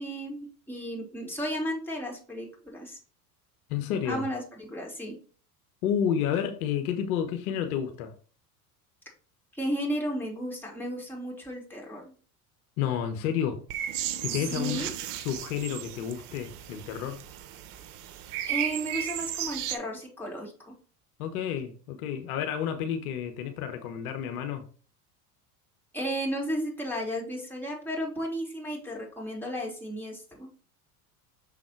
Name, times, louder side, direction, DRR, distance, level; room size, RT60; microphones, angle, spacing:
voice 1, 0.0-3.0 4.1-5.1 9.5-12.1 14.4-14.9 18.5-20.7 25.9-30.5, equal, 5° left, 3.5 m, -34 dB
voice 2, 3.7-4.2 5.8-8.1 12.8-13.6 14.2-14.8 15.2-17.2 21.2-24.6, left 9 dB, 70° left, 1.2 m, -30 dB
sound 1, 13.7-19.8, right 11 dB, 60° right, 1.1 m, -35 dB
6.7 x 4.1 x 4.5 m
hypercardioid pair, 80°, 45 cm